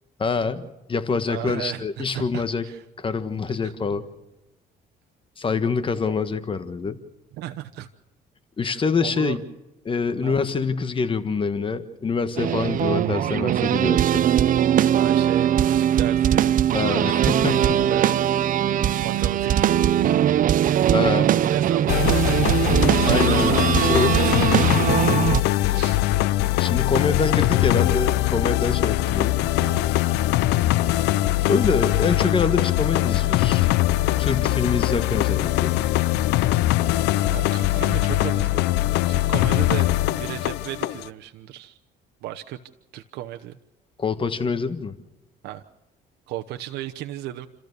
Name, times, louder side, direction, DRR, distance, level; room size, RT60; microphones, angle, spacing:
voice 1, 0.2-2.6 3.0-4.1 5.4-7.0 8.6-9.4 9.8-14.3 16.7-17.9 20.9-21.3 23.0-24.2 26.6-29.4 31.5-33.7 34.2-35.8 44.0-45.0, left 4 dB, 30° left, 11 dB, 1.5 m, -25 dB
voice 2, 1.3-2.8 3.6-3.7 6.1-6.2 7.4-7.9 8.6-9.4 10.2-10.4 15.0-16.5 17.9-18.1 19.0-20.2 21.1-23.1 24.1-24.7 25.6-26.0 29.6-29.9 37.3-41.8 42.2-42.6 42.9-43.6 45.4-45.6 46.3-47.5, right 13 dB, 80° right, 7 dB, 1.0 m, -34 dB
sound 1, 12.4-25.4, right 10 dB, 55° right, 0.7 m, -20 dB
sound 2, 21.9-41.1, left 16 dB, 85° left, 0.7 m, -22 dB
29.5 x 14.0 x 6.7 m, 1.0 s
cardioid pair, 110°, 17 cm